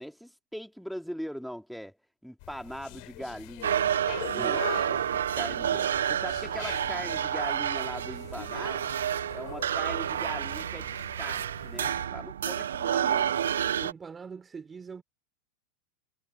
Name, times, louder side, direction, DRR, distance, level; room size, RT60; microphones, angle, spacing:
voice 1, 0.0-2.0 2.2-3.8 4.3-4.6 5.3-8.9 9.3-13.5, equal, ahead, 2.9 m, -40 dB
sound 1, 2.4-12.1, left 33 dB, 55° left, 4.1 m, -45 dB
sound 2, 3.6-13.9, right 9 dB, 80° right, 1.1 m, -29 dB
voice 2, 4.3-5.1 13.8-15.0, right 5 dB, 20° right, 4.0 m, -41 dB
hypercardioid pair, 90°, 0 cm